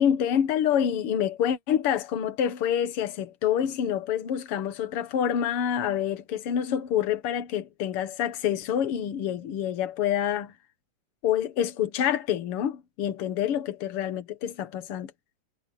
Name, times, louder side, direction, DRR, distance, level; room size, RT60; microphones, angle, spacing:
voice 1, 0.0-10.5 11.2-15.1, left 9 dB, 55° left, 2.0 m, -27 dB
omnidirectional pair, 3.6 m